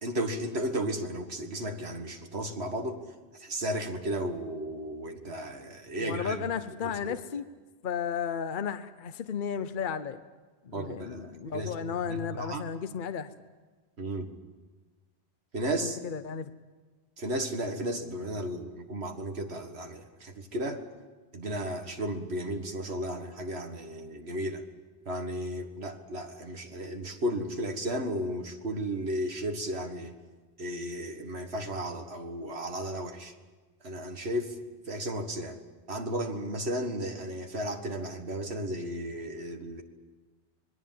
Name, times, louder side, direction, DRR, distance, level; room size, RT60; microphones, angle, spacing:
voice 1, 0.0-3.0 3.4-6.5 6.8-7.2 10.7-11.7 12.0-12.6 14.0-14.3 15.5-16.0 17.2-20.8 21.3-24.6 25.1-30.1 30.6-33.3 33.8-34.6 34.9-35.6 35.9-39.8, right 1 dB, 70° right, 5 dB, 2.1 m, -34 dB
voice 2, 6.0-7.4 7.8-10.2 10.6-13.3 15.8-16.5, left 7 dB, 50° left, 11 dB, 1.0 m, -34 dB
26.0 x 21.0 x 7.7 m, 1.3 s
omnidirectional pair, 1.1 m